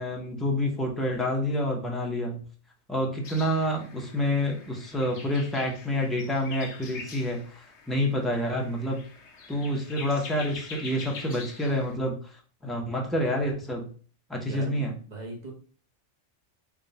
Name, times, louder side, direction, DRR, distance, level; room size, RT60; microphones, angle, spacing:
voice 1, 0.0-2.4 2.9-9.0 9.5-12.4 12.6-13.9 14.3-14.9, left 1 dB, ahead, -1 dB, 0.4 m, -28 dB
sound 1, 3.2-11.9, left 4 dB, 65° left, 1.0 m, -45 dB
voice 2, 14.4-15.5, right 2 dB, 40° right, -1 dB, 0.9 m, -40 dB
3.6 x 2.2 x 3.9 m, 0.40 s
omnidirectional pair, 1.3 m